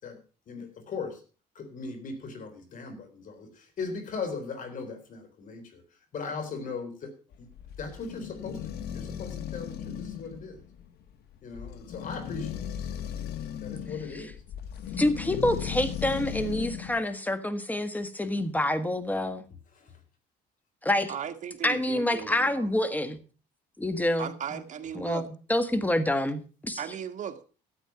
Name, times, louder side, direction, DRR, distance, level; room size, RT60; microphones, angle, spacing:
voice 1, 0.5-1.2 1.6-5.8 6.1-7.5 7.8-10.6 11.4-12.7 13.6-14.3 19.8-19.9, left 4 dB, 50° left, 3.7 m, -38 dB
sound 1, 7.3-17.0, left 9 dB, 70° left, 1.2 m, -37 dB
voice 2, 15.0-19.4 20.8-21.1 21.6-23.2 23.8-24.6 24.9-26.8, left 1 dB, 10° left, 1.5 m, -27 dB
voice 3, 21.1-22.7 24.2-25.2 26.8-27.4, right 8 dB, 45° right, 1.6 m, -36 dB
13.0 x 8.2 x 5.8 m
cardioid pair, 110°, 17 cm